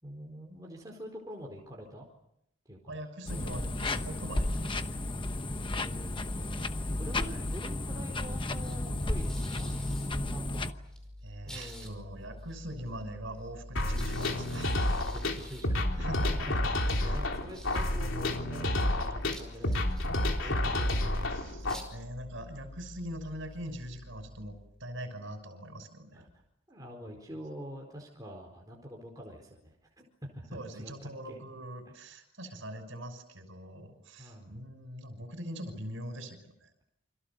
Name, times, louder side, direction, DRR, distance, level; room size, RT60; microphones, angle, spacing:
voice 1, 0.0-2.1 2.7-2.9 5.6-9.7 10.1-10.7 11.4-12.1 15.1-16.3 16.7-21.4 26.1-26.3 26.7-31.4 32.1-32.2 34.2-34.6, equal, 15° right, 0 dB, 4.6 m, -46 dB
voice 2, 2.9-5.0 7.2-7.4 11.2-14.9 16.0-16.6 17.0-17.2 20.6-26.3 30.5-36.7, equal, 65° right, 8 dB, 6.2 m, -42 dB
sound 1, 3.3-10.7, left 2 dB, 25° left, 1.0 m, -33 dB
darcie papieru, 5.4-25.3, left 1 dB, 5° left, 5.2 m, -48 dB
sound 2, 13.7-21.7, left 1 dB, 70° left, 3.5 m, -30 dB
29.0 x 26.5 x 7.0 m, 0.77 s
head